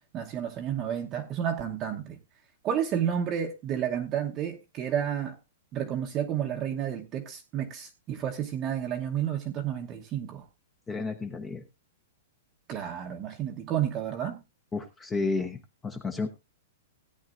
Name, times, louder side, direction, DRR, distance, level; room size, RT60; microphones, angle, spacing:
voice 1, 0.1-2.2 2.6-5.4 5.7-10.5 12.7-14.4, right 9 dB, 25° right, 0.9 m, -31 dB
voice 2, 10.9-11.6 14.7-16.3, left 3 dB, 10° left, 0.8 m, -32 dB
17.0 x 9.5 x 2.5 m
hypercardioid pair, 165°, 0 cm